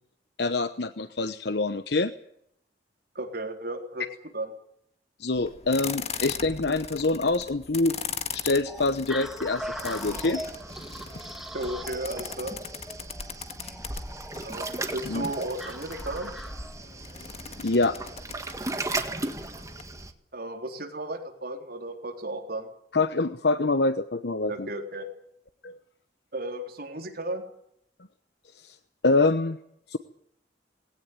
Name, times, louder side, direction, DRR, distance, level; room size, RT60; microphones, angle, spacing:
voice 1, 0.4-2.1 5.2-8.0 8.3-10.4 15.1-15.3 17.6-18.0 22.9-24.7 25.6-25.8 28.6-28.8 29.0-29.6 29.9-30.0, left 3 dB, 65° left, 11 dB, 1.0 m, -25 dB
voice 2, 3.2-4.0 4.3-4.5 11.5-12.5 14.4-16.3 20.3-22.7 24.5-25.1 26.3-27.4, right 1 dB, 60° right, 4 dB, 3.8 m, -34 dB
sound 1, 5.3-19.8, left 6 dB, 40° left, 1.7 m, -40 dB
sound 2, 8.7-16.8, equal, ahead, 1.8 m, -41 dB
Waves surf, 9.6-20.1, right 2 dB, 20° right, 1.8 m, -37 dB
20.5 x 17.0 x 9.4 m, 0.73 s
head